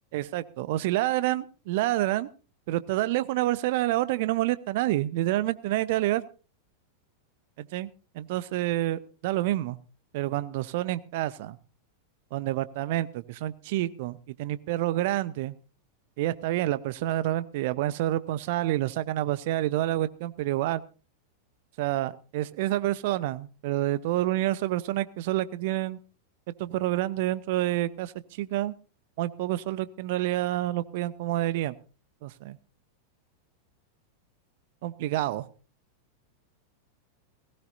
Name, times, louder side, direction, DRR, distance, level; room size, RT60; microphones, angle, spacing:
voice 1, 0.1-2.3 2.7-6.2 7.6-7.9 8.1-9.8 10.1-11.6 12.3-15.5 16.2-20.8 21.8-26.0 26.6-28.7 29.2-31.7 32.2-32.6 34.8-35.5, right 15 dB, 50° right, 16 dB, 0.9 m, -28 dB
19.0 x 17.5 x 2.7 m, 0.34 s
figure-of-eight pair, 90°, 0 cm